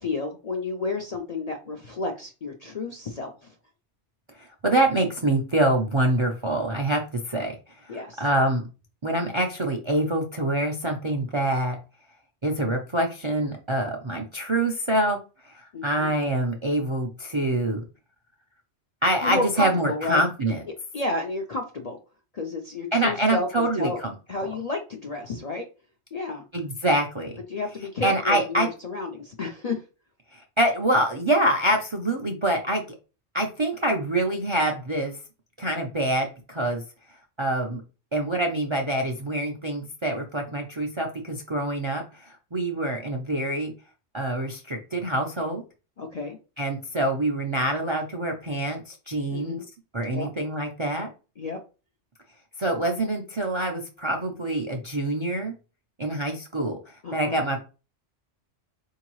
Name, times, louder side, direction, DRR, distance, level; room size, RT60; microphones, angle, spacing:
voice 1, 0.0-3.5 7.9-8.2 15.7-16.1 19.2-20.2 20.9-22.0 22.3-24.0 24.3-25.7 26.1-26.4 27.5-29.8 46.0-46.4 49.3-49.7 50.1-50.3 51.4-51.6 57.0-57.4, left 3 dB, 50° left, 2 dB, 0.4 m, -31 dB
voice 2, 4.4-7.5 7.8-8.6 9.0-11.8 12.4-15.2 15.4-17.8 19.0-20.6 22.9-24.1 26.5-27.3 28.0-28.7 30.3-32.8 33.3-35.2 35.6-36.8 37.4-37.8 38.1-43.7 44.1-45.6 46.6-49.6 49.9-51.1 52.6-55.5 56.0-57.6, right 1 dB, 40° right, 2 dB, 0.4 m, -25 dB
4.5 x 2.8 x 3.0 m, 0.32 s
omnidirectional pair, 1.3 m